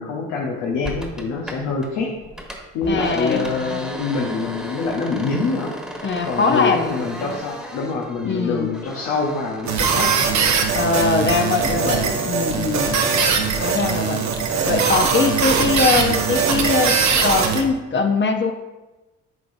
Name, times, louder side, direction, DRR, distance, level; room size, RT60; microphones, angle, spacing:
voice 1, 0.0-2.2 2.7-5.8 6.2-10.2 11.5-12.2 13.9-14.4, left 4 dB, 90° left, -2 dB, 0.9 m, -25 dB
sound 1, 0.8-1.9 2.2-12.6 12.9-17.8, equal, ahead, 1.4 m, -37 dB
voice 2, 2.9-3.4 6.0-6.9 8.2-8.7 10.7-13.0 13.6-14.2 14.7-18.5, left 4 dB, 40° left, 5 dB, 0.8 m, -21 dB
sound 2, 9.7-17.6, right 5 dB, 65° right, 0.9 m, -20 dB
10.5 x 3.9 x 2.6 m, 1.1 s
supercardioid pair, 60°, 31 cm